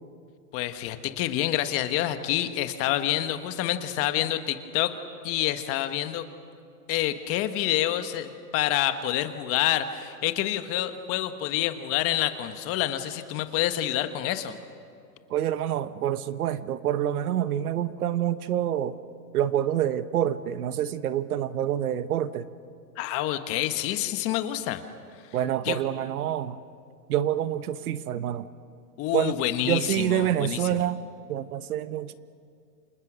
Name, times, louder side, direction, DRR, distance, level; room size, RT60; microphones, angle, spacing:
voice 1, 0.5-4.9 5.2-6.2 6.9-14.6 23.0-24.8 25.6-25.8 29.0-30.8, left 13 dB, 30° left, 9 dB, 1.3 m, -27 dB
voice 2, 15.3-18.9 19.3-22.5 25.3-26.6 27.1-28.5 29.1-29.3 29.6-31.0 31.3-32.1, right 11 dB, 65° right, 13 dB, 1.2 m, -27 dB
29.0 x 27.0 x 6.3 m, 2.3 s
hypercardioid pair, 140°, 48 cm